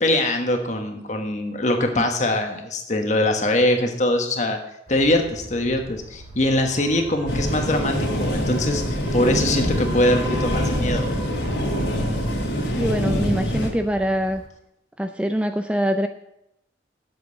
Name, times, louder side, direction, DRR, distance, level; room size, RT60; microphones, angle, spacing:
voice 1, 0.0-4.6 4.9-11.0, left 1 dB, 40° left, 4 dB, 1.4 m, -22 dB
sound 1, 4.9-14.5, equal, 35° right, 2.1 m, -37 dB
sound 2, 7.3-13.7, equal, 80° left, 2.6 m, -24 dB
voice 2, 12.7-14.4 15.0-16.1, equal, 5° right, 7 dB, 0.4 m, -24 dB
7.9 x 7.9 x 8.1 m, 0.83 s
head